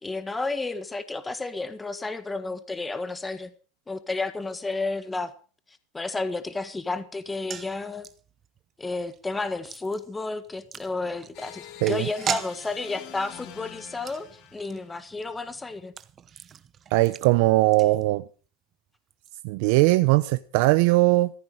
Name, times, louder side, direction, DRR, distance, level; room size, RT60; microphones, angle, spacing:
voice 1, 0.0-3.5 3.9-5.3 5.9-8.1 8.8-15.9, left 3 dB, 10° left, 1.5 m, -31 dB
sound 1, 7.2-18.5 18.7-18.8 19.1-19.3, right 8 dB, 30° right, 0.9 m, -40 dB
sound 2, 11.3-15.0, left 12 dB, 50° left, 2.4 m, -46 dB
voice 2, 16.9-18.2 19.4-21.3, right 20 dB, 65° right, 0.7 m, -20 dB
15.0 x 14.0 x 4.9 m
supercardioid pair, 120°, 0 cm